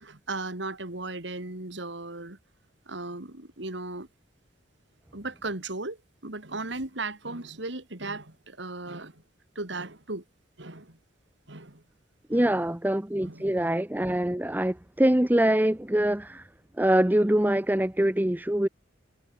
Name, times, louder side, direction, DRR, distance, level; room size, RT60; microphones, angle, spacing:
voice 1, 0.0-2.4 2.9-4.1 5.1-6.0 6.2-9.2 9.5-10.2 10.6-11.0 11.5-11.8 12.3-12.5 13.2-13.5, right 2 dB, 65° right, 2.9 m, -36 dB
voice 2, 12.3-16.5 16.8-18.7, right 1 dB, 10° right, 0.7 m, -24 dB
head